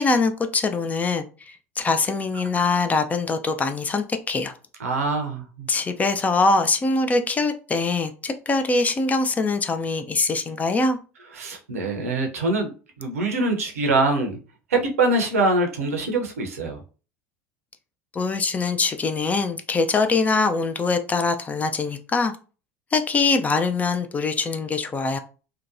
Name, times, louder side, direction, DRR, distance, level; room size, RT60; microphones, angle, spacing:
voice 1, 0.0-4.5 5.7-11.0 18.1-22.3 22.9-25.2, left 3 dB, 20° left, 8 dB, 0.3 m, -23 dB
voice 2, 4.8-5.7 11.3-12.7 13.0-14.4 14.7-16.8, right 2 dB, 75° right, 3 dB, 0.6 m, -23 dB
2.8 x 2.2 x 2.5 m, 0.35 s
figure-of-eight pair, 70°, 8 cm